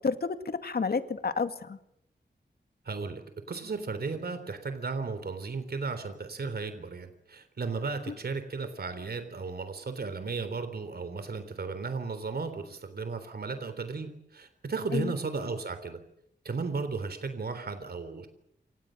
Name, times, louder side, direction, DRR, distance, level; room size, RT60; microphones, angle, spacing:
voice 1, 0.0-1.8 14.9-15.1, left 4 dB, 60° left, 9 dB, 2.3 m, -30 dB
voice 2, 2.9-3.2 3.5-16.0 16.4-18.3, right 4 dB, 60° right, 9 dB, 3.6 m, -35 dB
28.5 x 26.5 x 6.5 m, 0.74 s
wide cardioid pair, 100°, 18 cm